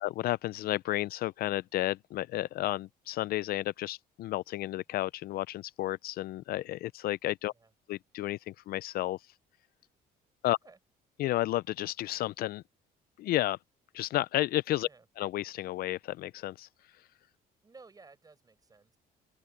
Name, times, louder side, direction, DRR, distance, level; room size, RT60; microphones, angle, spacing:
voice 1, 0.0-7.5 7.9-9.2 10.4-10.6 11.2-12.6 13.2-13.6 13.9-14.9 15.2-16.7, left 15 dB, 65° left, 0.4 m, -32 dB
voice 2, 17.6-19.0, right 4 dB, 20° right, 5.0 m, -56 dB
open air
cardioid pair, 110°, 17 cm